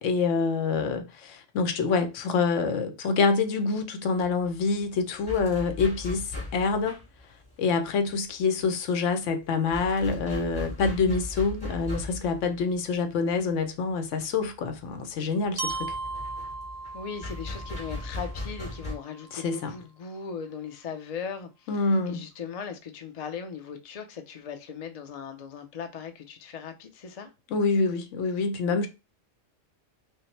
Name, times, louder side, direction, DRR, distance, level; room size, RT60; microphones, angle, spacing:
voice 1, 0.0-7.0 7.6-15.9 19.3-19.7 21.7-22.2 27.5-28.9, left 4 dB, 75° left, 1.0 m, -26 dB
sound 1, 4.2-18.9, left 2 dB, 35° left, 2.5 m, -39 dB
Glockenspiel, 15.6-19.5, right 3 dB, 60° right, 0.7 m, -38 dB
voice 2, 16.9-27.3, left 6 dB, 50° left, 0.4 m, -38 dB
5.5 x 2.0 x 3.1 m
omnidirectional pair, 1.3 m